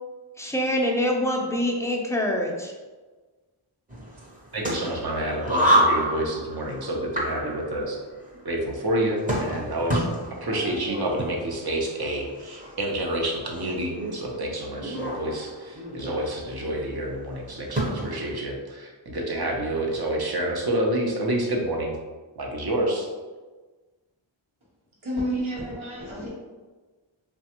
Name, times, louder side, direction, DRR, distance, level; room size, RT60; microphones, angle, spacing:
voice 1, 0.4-2.7, left 1 dB, 5° left, 0 dB, 0.4 m, -25 dB
sound 1, 3.9-18.4, right 1 dB, 15° right, 0.7 m, -29 dB
voice 2, 4.5-8.0 8.4-10.1 10.4-21.9 22.4-23.1, right 1 dB, 50° right, 0 dB, 0.7 m, -28 dB
voice 3, 25.0-26.3, equal, 75° right, -5 dB, 1.0 m, -30 dB
3.2 x 2.2 x 2.9 m, 1.3 s
wide cardioid pair, 45°, 48 cm